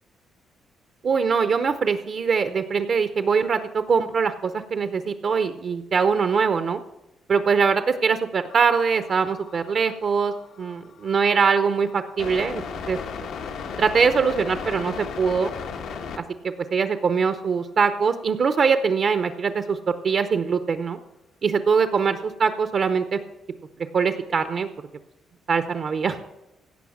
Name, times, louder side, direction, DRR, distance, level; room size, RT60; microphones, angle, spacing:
voice 1, 1.0-6.8 7.3-10.3 10.6-12.6 12.9-13.0 13.8-15.5 16.4-21.0 21.4-23.2 23.9-24.7 25.5-26.2, right 5 dB, 45° right, 9 dB, 0.6 m, -22 dB
sound 1, 8.5-16.2 19.3-19.4, left 6 dB, 85° left, 1.2 m, -36 dB
16.5 x 5.6 x 7.1 m, 0.94 s
cardioid pair, 135°, 0 cm